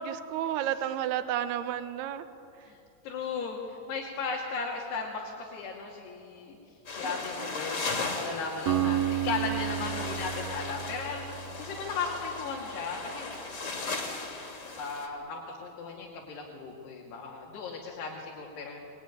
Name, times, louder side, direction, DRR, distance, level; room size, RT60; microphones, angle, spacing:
voice 1, 0.0-2.2, right 10 dB, 80° right, 9 dB, 3.0 m, -31 dB
voice 2, 3.0-6.6 6.9-14.0 14.8-18.8, left 4 dB, 80° left, -2 dB, 4.5 m, -36 dB
sound 1, 6.9-15.1, left 3 dB, 35° left, 3.3 m, -37 dB
Acoustic guitar, 8.7-12.8, right 11 dB, 55° right, 2.2 m, -32 dB
25.5 x 22.0 x 9.8 m, 2.8 s
omnidirectional pair, 4.7 m